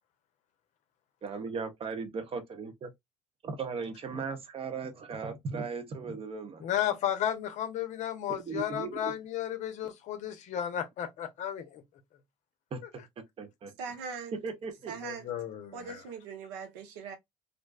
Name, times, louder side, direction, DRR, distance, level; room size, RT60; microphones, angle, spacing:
voice 1, 1.2-2.9 3.4-6.7 8.3-9.1 12.7-13.7 14.3-15.0, right 5 dB, 40° right, 0.8 m, -37 dB
voice 2, 6.6-11.8 15.0-16.0, left 10 dB, 55° left, 0.6 m, -33 dB
voice 3, 13.8-14.4 14.9-15.3 15.7-17.2, right 5 dB, 75° right, 0.8 m, -40 dB
2.5 x 2.2 x 2.3 m
hypercardioid pair, 75°, 15 cm